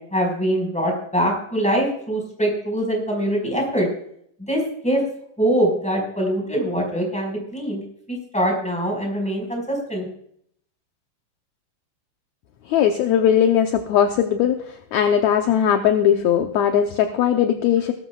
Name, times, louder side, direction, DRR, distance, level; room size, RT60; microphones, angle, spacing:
voice 1, 0.1-3.9 4.5-5.0 5.4-10.0, equal, ahead, 0 dB, 4.6 m, -23 dB
voice 2, 12.7-17.9, left 9 dB, 75° left, 5 dB, 1.8 m, -19 dB
19.0 x 13.5 x 2.4 m, 0.67 s
omnidirectional pair, 4.0 m